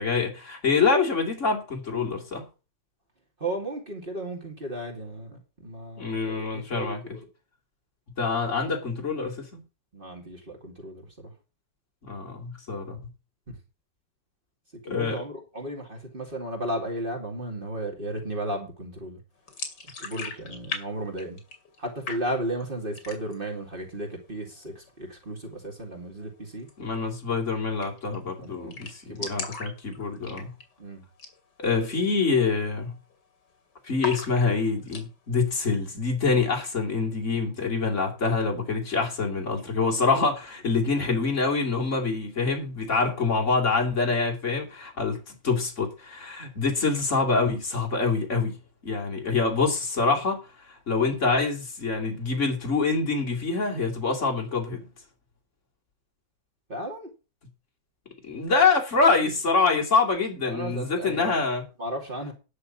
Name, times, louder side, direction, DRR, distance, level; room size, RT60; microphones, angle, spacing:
voice 1, 0.0-2.4 6.0-7.0 8.2-9.6 12.0-13.0 14.8-15.2 26.8-30.5 31.6-33.0 33.8-48.6 48.8-54.9 58.2-61.6, left 4 dB, 40° left, 3.2 m, -25 dB
voice 2, 3.4-7.3 9.9-11.3 14.8-19.2 20.0-21.4 21.8-26.7 28.4-28.7 29.0-29.3 30.8-31.1 31.6-32.0 40.9-41.2 56.7-57.1 60.4-61.4 61.8-62.3, right 1 dB, 30° right, 2.8 m, -34 dB
sound 1, 19.5-20.8 21.1-21.8 22.1-22.6 23.0-23.5 23.8-23.9 24.2-24.9 26.6-26.7 27.0-27.1 27.4-27.5 27.8-28.2 28.4-28.5 28.7-30.8 31.1-31.4 31.7-31.8 32.4-32.7 32.9-33.5 34.0-35.1, left 4 dB, 65° left, 3.2 m, -37 dB
10.5 x 6.5 x 7.2 m
omnidirectional pair, 1.9 m